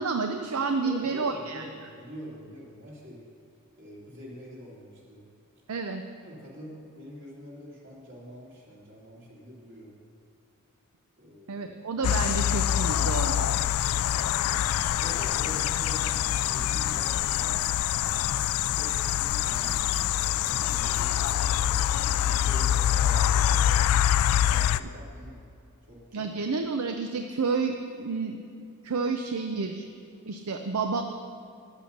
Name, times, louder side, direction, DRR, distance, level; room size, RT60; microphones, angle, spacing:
voice 1, 0.0-1.7 5.7-6.0 11.5-13.5 26.1-29.9 30.3-31.0, right 4 dB, 75° right, 6 dB, 0.6 m, -30 dB
voice 2, 0.8-3.2 3.8-5.2 6.2-9.9 11.2-11.7 15.0-17.6 18.7-21.1 21.9-23.6 24.4-25.5 25.9-26.2, equal, 55° right, -4 dB, 2.9 m, -45 dB
sound 1, 12.0-24.8, left 11 dB, 75° left, 0.3 m, -25 dB
10.5 x 8.2 x 6.6 m, 2.5 s
head